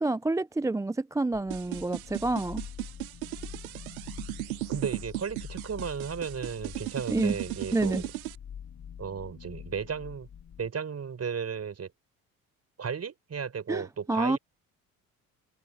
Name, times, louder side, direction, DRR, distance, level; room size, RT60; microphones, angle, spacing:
voice 1, 0.0-2.6 7.1-7.4 7.7-8.0 13.7-14.4, right 2 dB, 10° right, 0.5 m, -28 dB
sound 1, 1.3-10.7, left 8 dB, 45° left, 5.6 m, -45 dB
sound 2, 1.5-8.4, right 18 dB, 75° right, 0.7 m, -36 dB
voice 2, 4.7-8.1 9.0-10.3 10.6-11.9 12.8-14.4, right 6 dB, 35° right, 6.2 m, -34 dB
figure-of-eight pair, 50°, 42 cm